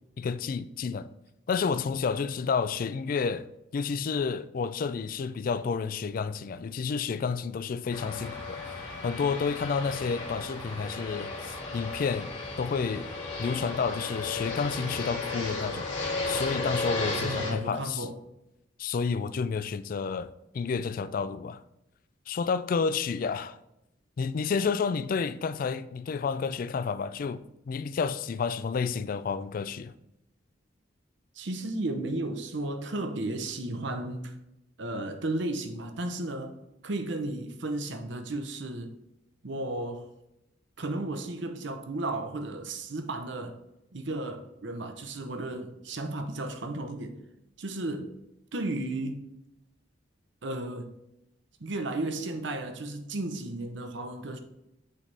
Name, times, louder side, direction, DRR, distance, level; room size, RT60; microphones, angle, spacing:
voice 1, 0.2-1.1 1.5-3.5 3.7-8.8 9.0-12.3 12.6-13.1 13.4-15.9 16.3-18.1 18.8-21.6 22.3-23.6 24.2-29.9, left 5 dB, 45° left, 0.3 m, -30 dB
Fixed-wing aircraft airplane, 7.9-17.5, left 2 dB, 85° left, 2.2 m, -34 dB
voice 2, 17.2-18.2 31.3-34.3 34.8-36.5 36.8-39.0 39.4-40.1 40.8-43.6 43.9-47.2 47.6-48.1 48.5-49.2 50.4-50.9 51.6-54.4, right 2 dB, 65° right, 0.7 m, -34 dB
8.9 x 4.1 x 3.3 m
head